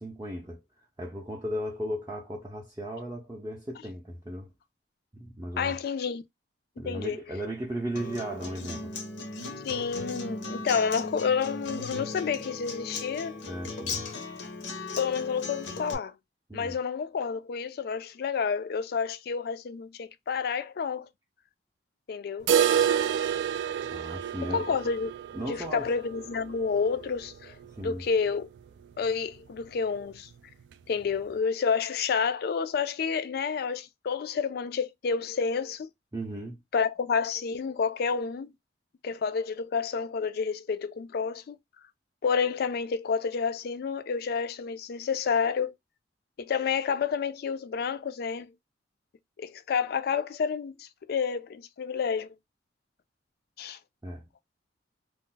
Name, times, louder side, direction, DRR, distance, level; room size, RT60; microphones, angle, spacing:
voice 1, 0.0-4.5 5.1-5.8 6.8-8.9 13.5-14.1 16.5-16.8 23.9-24.7 25.3-25.9 27.7-28.0 36.1-36.6 54.0-54.3, equal, 15° right, 0.5 m, -36 dB
voice 2, 5.6-6.2 6.9-7.2 9.6-13.4 15.0-16.1 16.5-21.1 22.1-22.6 24.5-25.1 25.5-27.5 27.8-28.5 29.0-30.3 30.9-35.9 36.7-38.5 39.0-41.6 42.2-45.7 46.4-48.5 49.4-52.3 53.6-53.8, left 6 dB, 55° left, 0.3 m, -29 dB
Acoustic guitar, 8.0-15.9, left 3 dB, 90° left, 0.7 m, -37 dB
sound 1, 22.5-28.3 28.6-28.7 29.0-29.1 29.6-29.7 30.6-30.7, right 8 dB, 80° right, 0.3 m, -29 dB
2.3 x 2.0 x 3.8 m
head